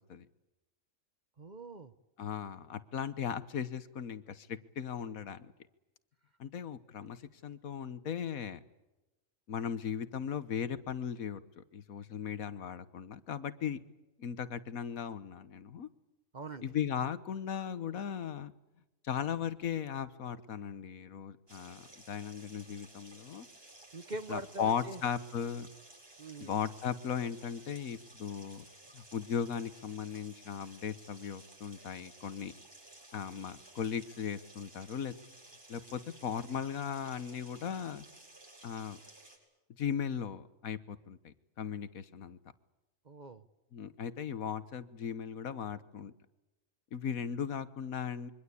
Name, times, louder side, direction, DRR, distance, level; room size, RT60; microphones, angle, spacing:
voice 1, 1.4-1.9 16.3-16.6 23.9-25.0 26.2-26.5 43.0-43.4, right 2 dB, 35° right, 12 dB, 1.1 m, -43 dB
voice 2, 2.2-5.5 6.4-8.6 9.5-13.8 14.2-15.9 16.6-18.5 19.0-23.5 24.3-25.7 26.4-28.7 28.9-32.5 33.1-35.2 35.7-38.0 38.6-39.0 39.8-42.4 43.7-46.1 46.9-48.3, left 7 dB, 85° left, 14 dB, 1.6 m, -37 dB
sound 1, 21.5-39.4, right 2 dB, 20° right, 8.2 m, -56 dB
26.0 x 24.0 x 8.5 m, 1.0 s
omnidirectional pair, 1.4 m